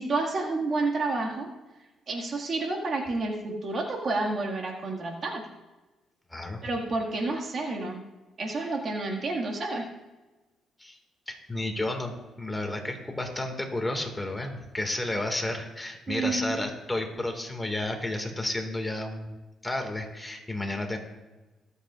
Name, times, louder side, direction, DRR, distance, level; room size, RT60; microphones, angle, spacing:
voice 1, 0.0-1.5 2.1-5.4 6.6-8.0 8.4-9.9 16.1-16.6, right 3 dB, 50° right, 0 dB, 1.8 m, -30 dB
voice 2, 11.3-12.1 12.4-19.3 19.6-21.0, left 1 dB, 15° left, 3 dB, 1.9 m, -32 dB
23.5 x 8.0 x 2.4 m, 1.1 s
cardioid pair, 90°, 0 cm